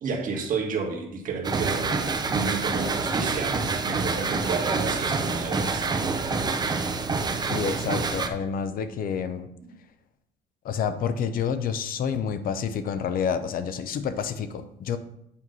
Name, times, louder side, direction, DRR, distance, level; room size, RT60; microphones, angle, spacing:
voice 1, 0.0-2.0 2.3-5.9, right 4 dB, 50° right, 0 dB, 1.6 m, -31 dB
sound 1, 1.4-8.3, right 4 dB, 25° right, 0.7 m, -27 dB
voice 2, 7.5-9.5 10.6-15.0, left 7 dB, 60° left, 10 dB, 0.6 m, -28 dB
8.4 x 3.0 x 5.4 m, 0.76 s
cardioid pair, 110°, 17 cm